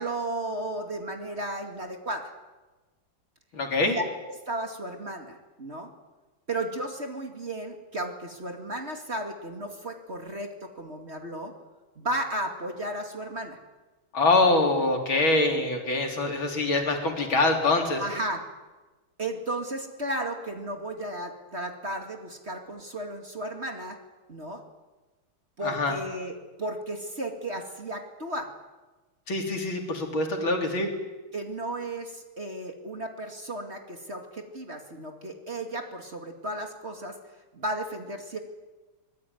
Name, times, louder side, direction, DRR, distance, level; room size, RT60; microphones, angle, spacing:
voice 1, 0.0-2.3 3.8-5.9 6.5-11.5 12.0-13.6 18.0-18.5 19.2-24.0 24.3-24.6 25.6-28.5 31.3-37.2 37.5-38.4, right 1 dB, 30° right, 4 dB, 2.5 m, -34 dB
voice 2, 3.5-4.0 14.1-18.0 25.6-25.9 29.3-30.9, left 2 dB, 65° left, 3 dB, 4.3 m, -24 dB
24.0 x 20.0 x 9.4 m, 1.2 s
omnidirectional pair, 2.3 m